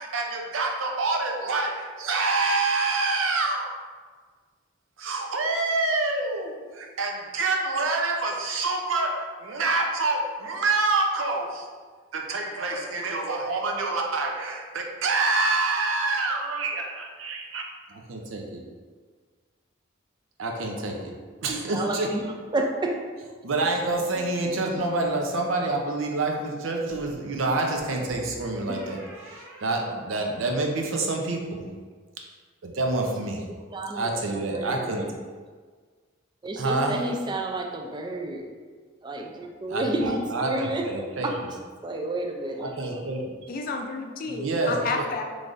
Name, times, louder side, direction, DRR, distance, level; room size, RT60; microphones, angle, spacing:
voice 1, 0.0-3.7 5.0-11.7 12.1-17.6 17.9-18.6 20.4-21.0 21.4-22.1 23.4-31.7 32.6-33.4 33.9-35.1 36.6-37.0 39.7-41.3 42.8-43.2 44.3-45.1, right 3 dB, 90° right, 1 dB, 0.6 m, -27 dB
voice 2, 21.5-22.2 22.5-23.0 33.7-35.1 36.4-38.5 39.0-40.9 41.2-41.3 41.8-43.0, right 2 dB, 25° right, 2 dB, 0.3 m, -30 dB
sound 1, 24.1-25.0 26.9-30.6, left 1 dB, 60° right, 1.2 m, -45 dB
voice 3, 43.5-45.2, left 3 dB, 45° left, 3 dB, 0.4 m, -30 dB
3.8 x 3.2 x 2.5 m, 1.5 s
head